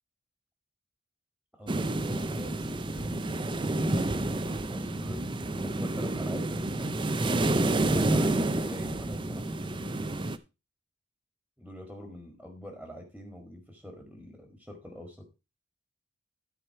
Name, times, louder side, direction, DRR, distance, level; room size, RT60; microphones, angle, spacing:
voice 1, 1.5-3.2 4.5-5.2 5.6-7.0 7.8-9.9 11.6-15.3, equal, ahead, 3 dB, 1.8 m, -45 dB
sound 1, 1.7-10.4, right 2 dB, 25° right, 0.5 m, -29 dB
13.0 x 4.9 x 4.5 m, 0.28 s
head